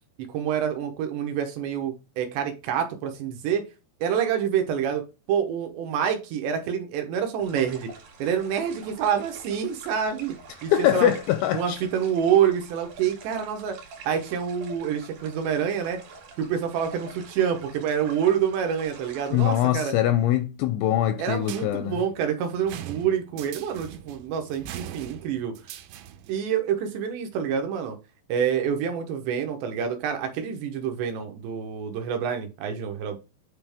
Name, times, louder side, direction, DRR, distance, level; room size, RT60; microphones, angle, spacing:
voice 1, 0.3-3.6 4.0-5.0 5.3-7.9 8.2-10.3 10.6-11.1 11.5-13.8 14.1-16.0 16.4-19.9 21.2-25.5 26.3-28.0 28.3-33.2, right 8 dB, 75° right, 2.9 m, -27 dB
sound 1, 7.4-19.7, right 4 dB, 55° right, 3.2 m, -46 dB
voice 2, 10.7-11.8 19.3-22.0, left 12 dB, 85° left, 2.7 m, -23 dB
sound 2, 21.4-26.4, right 12 dB, 90° right, 3.2 m, -41 dB
9.1 x 3.8 x 3.4 m
omnidirectional pair, 5.7 m